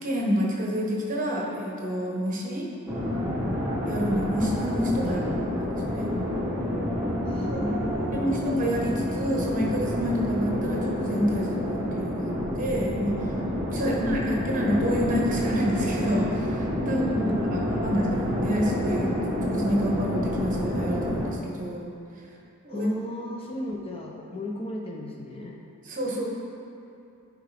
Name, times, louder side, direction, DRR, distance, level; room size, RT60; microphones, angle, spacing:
voice 1, 0.0-2.7 3.9-5.2 5.5-6.1 7.5-7.6 8.1-13.3 13.7-19.1 19.4-21.9 22.6-22.9 25.8-26.3, equal, 35° right, -2 dB, 1.1 m, -28 dB
sound 1, 2.9-21.3, left 1 dB, 15° right, 1.1 m, -28 dB
voice 2, 5.0-5.4 7.2-8.3 13.8-14.5 16.9-17.9 22.7-25.6, left 1 dB, 25° left, 0 dB, 0.5 m, -33 dB
10.0 x 4.8 x 3.4 m, 2.7 s
head